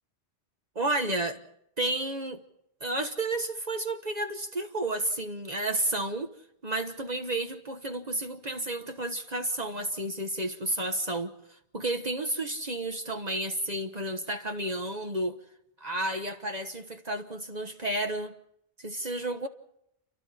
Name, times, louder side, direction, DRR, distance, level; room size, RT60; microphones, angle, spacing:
voice 1, 0.7-1.4 1.8-2.4 2.8-6.3 6.6-11.3 11.7-15.4 15.8-18.3 18.8-19.5, right 1 dB, 40° right, 1.3 m, -31 dB
28.5 x 24.5 x 4.3 m
omnidirectional pair, 1.1 m